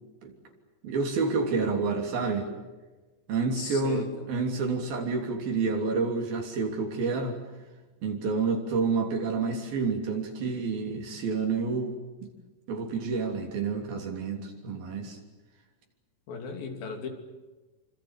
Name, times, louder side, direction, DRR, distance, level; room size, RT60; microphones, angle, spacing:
voice 1, 0.8-2.5 3.3-4.0 4.3-7.4 8.0-12.0 12.7-15.2, right 4 dB, 85° right, 2 dB, 5.1 m, -29 dB
voice 2, 3.6-4.1 16.3-17.1, left 5 dB, 80° left, 5 dB, 4.7 m, -36 dB
26.5 x 25.5 x 7.4 m, 1.2 s
omnidirectional pair, 4.1 m